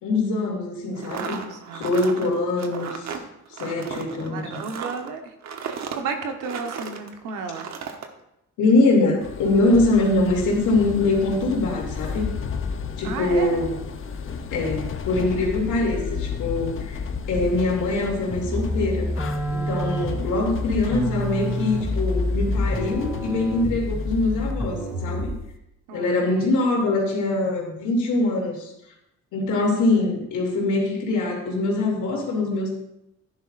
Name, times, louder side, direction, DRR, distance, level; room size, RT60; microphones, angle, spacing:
voice 1, 0.0-1.4 1.7-3.2 3.5-4.5 8.6-12.3 13.0-13.8 14.5-17.0 17.3-19.1 19.5-25.3 25.9-28.7 29.3-32.7, left 2 dB, 85° left, -1 dB, 2.8 m, -23 dB
sound 1, 0.9-7.1 7.5-8.1, right 6 dB, 60° right, 1.1 m, -35 dB
voice 2, 1.4-1.8 4.3-5.3 5.6-7.7 13.0-13.6 25.9-26.5, right 5 dB, 90° right, 5 dB, 1.3 m, -33 dB
sound 2, 9.2-24.5, left 6 dB, 45° left, 0.8 m, -33 dB
sound 3, 18.3-25.5, left 1 dB, 10° right, 2.9 m, -28 dB
11.5 x 10.5 x 2.6 m, 0.82 s
cardioid pair, 90°, 30 cm